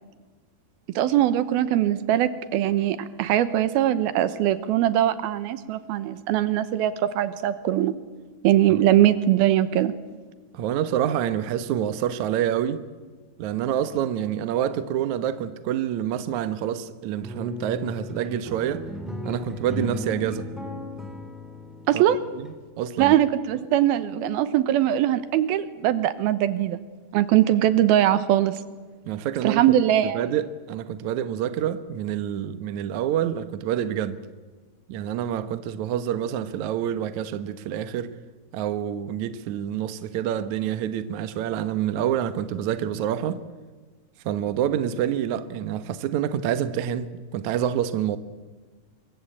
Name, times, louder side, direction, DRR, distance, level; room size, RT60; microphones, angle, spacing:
voice 1, 1.0-7.9 8.4-9.9 21.9-22.2 23.0-26.8 27.1-28.6 29.4-30.2, right 12 dB, 85° right, 3.0 m, -21 dB
voice 2, 10.5-12.8 13.4-18.9 19.2-20.5 21.9-22.0 22.4-23.1 29.1-29.6 30.0-34.2 34.9-38.1 38.5-43.4 44.2-48.2, right 10 dB, 65° right, 2.2 m, -27 dB
sound 1, 17.1-22.5, left 2 dB, ahead, 3.6 m, -36 dB
26.5 x 22.5 x 8.5 m
omnidirectional pair, 4.3 m